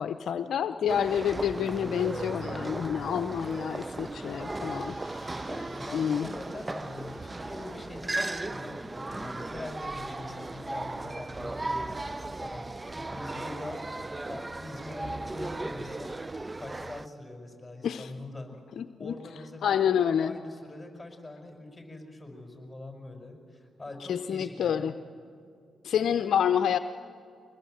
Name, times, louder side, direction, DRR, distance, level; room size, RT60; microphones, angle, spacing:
voice 1, 0.0-4.9 5.9-6.3 17.8-18.1 18.8-19.1 19.6-20.3 24.1-24.9 25.8-26.8, left 8 dB, 70° left, 11 dB, 0.6 m, -28 dB
sound 1, 0.9-17.1, right 2 dB, 25° right, 0.5 m, -36 dB
sound 2, 3.9-9.5, right 2 dB, 55° right, 7.8 m, -56 dB
voice 2, 5.1-13.8 14.3-16.1 16.6-18.5 19.0-19.9 20.2-24.9, left 2 dB, 15° left, 3 dB, 6.1 m, -43 dB
24.5 x 20.0 x 8.0 m, 2.3 s
supercardioid pair, 50°, 0 cm